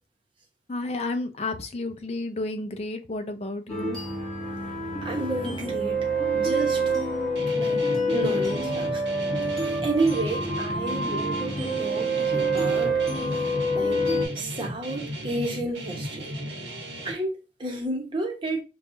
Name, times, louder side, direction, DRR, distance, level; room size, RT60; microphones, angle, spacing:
voice 1, 0.7-4.0, left 2 dB, 35° left, 0.5 m, -31 dB
sound 1, 3.7-14.3, right 1 dB, 5° left, 1.1 m, -27 dB
voice 2, 5.0-6.1 6.3-6.8 7.5-7.8 8.1-9.0 9.8-12.9 13.7-14.0 14.3-16.3 17.0-18.6, right 2 dB, 30° right, 0.9 m, -30 dB
Guitar, 7.4-17.1, equal, 80° right, 1.0 m, -35 dB
5.2 x 2.3 x 2.7 m
head